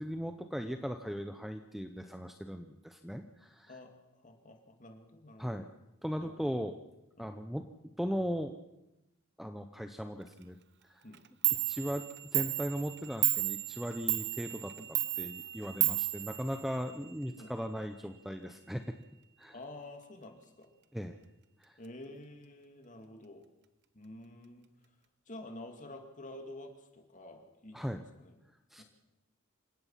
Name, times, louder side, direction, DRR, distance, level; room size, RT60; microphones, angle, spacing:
voice 1, 0.0-3.8 5.4-5.7 6.0-6.8 7.2-7.6 8.0-8.5 9.4-10.6 10.9-11.0 11.7-12.0 12.3-14.7 15.2-18.9 19.4-19.6 20.9-21.2 21.6-21.7 27.7-28.0 28.7-28.8, equal, ahead, 7 dB, 0.7 m, -38 dB
voice 2, 4.2-5.6 6.2-6.5 7.2-7.3 11.0-11.2 14.8-14.9 15.7-15.8 17.4-17.5 19.5-20.7 21.8-23.5 23.9-24.7 25.3-28.3 28.8-28.9, left 1 dB, 35° left, 4 dB, 2.4 m, -49 dB
Clock, 11.1-11.2 11.4-17.1, right 17 dB, 50° right, 0.9 m, -33 dB
28.0 x 16.5 x 5.8 m, 0.94 s
head